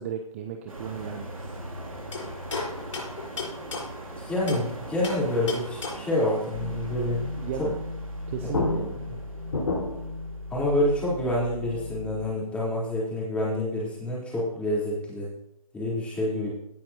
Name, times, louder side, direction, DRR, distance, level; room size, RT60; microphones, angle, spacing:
voice 1, 0.0-1.6 7.3-7.7 8.3-9.0, right 8 dB, 20° right, 5 dB, 0.7 m, -35 dB
sound 1, 0.7-12.0 12.5-12.7, right 1 dB, 70° right, 2.9 m, -41 dB
sound 2, 2.1-4.7 5.0-6.2 8.1-8.2 8.5-10.1, left 3 dB, 60° left, 4.9 m, -32 dB
voice 2, 4.2-7.3 7.6-7.7 8.4-8.5 10.5-15.3 15.7-16.5, left 1 dB, 5° left, -7 dB, 3.8 m, -27 dB
sound 3, 6.5-12.2, left 2 dB, 85° left, 3.3 m, -37 dB
17.5 x 8.6 x 2.9 m, 0.79 s
figure-of-eight pair, 140°, 18 cm